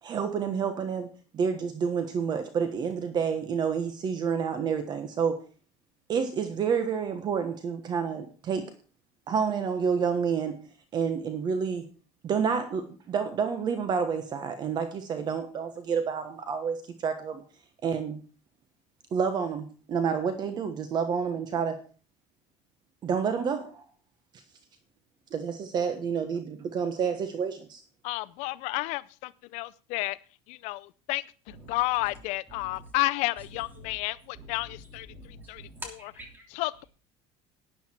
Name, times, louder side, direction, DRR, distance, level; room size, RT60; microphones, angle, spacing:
voice 1, 0.0-5.4 6.1-8.7 9.3-10.6 10.9-11.9 12.2-17.4 17.8-18.2 19.1-21.8 23.0-23.8 25.3-27.8, right 6 dB, 35° right, 9 dB, 1.2 m, -29 dB
voice 2, 28.0-30.2 30.5-35.1 35.5-35.6 36.5-36.8, left 20 dB, 65° left, 16 dB, 0.5 m, -31 dB
voice 3, 31.5-31.8 32.5-32.9 33.8-33.9 34.3-36.4, equal, 15° right, 3 dB, 3.2 m, -46 dB
12.5 x 9.6 x 4.4 m, 0.38 s
cardioid pair, 155°, 13 cm